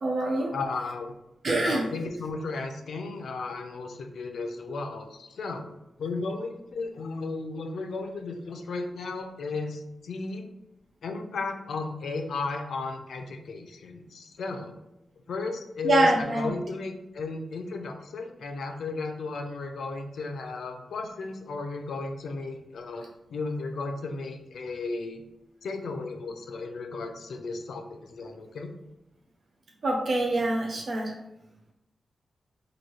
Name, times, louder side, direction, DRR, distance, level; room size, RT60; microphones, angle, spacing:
voice 1, 0.0-0.5 1.4-1.9 15.8-16.5 29.8-31.1, right 2 dB, 50° right, 0 dB, 0.5 m, -25 dB
voice 2, 0.5-1.1 1.6-5.7 6.0-10.5 11.0-14.7 15.3-25.2 25.6-28.7, left 3 dB, 85° left, 4 dB, 0.5 m, -34 dB
3.0 x 2.7 x 4.4 m, 0.90 s
wide cardioid pair, 125°, 0 cm